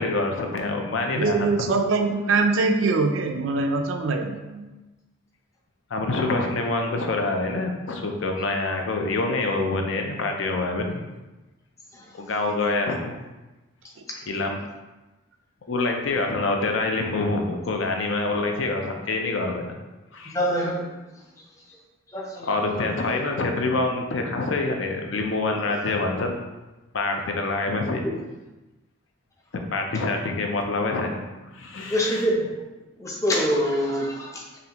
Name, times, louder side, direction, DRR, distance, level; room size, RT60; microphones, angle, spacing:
voice 1, 0.0-1.6 5.9-11.1 12.1-13.2 14.3-14.6 15.7-19.8 20.1-20.4 22.5-26.4 26.9-28.1 29.5-31.2 31.5-32.3, left 2 dB, 70° left, 3 dB, 0.5 m, -26 dB
voice 2, 1.1-4.7, right 3 dB, 75° right, 5 dB, 0.4 m, -23 dB
voice 3, 20.3-20.9 22.1-22.5 31.9-32.4 33.0-34.4, equal, 15° left, -2 dB, 0.5 m, -24 dB
4.0 x 3.1 x 2.9 m, 1.1 s
head